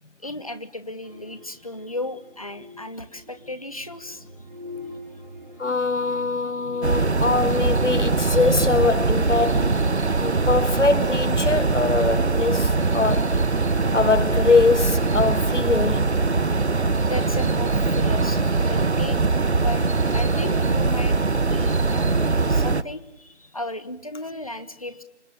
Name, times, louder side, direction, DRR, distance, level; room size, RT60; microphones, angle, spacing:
voice 1, 0.2-4.2 10.1-10.5 17.0-21.2 21.5-25.0, left 1 dB, 30° left, 1.4 m, -35 dB
sound 1, 1.0-19.9, left 1 dB, 40° right, 3.2 m, -45 dB
voice 2, 5.6-9.8 10.2-13.3 13.9-16.1, left 4 dB, 75° left, 1.5 m, -22 dB
sound 2, 6.8-22.8, right 3 dB, 65° right, 1.1 m, -22 dB
29.0 x 26.0 x 7.1 m
figure-of-eight pair, 175°, 36 cm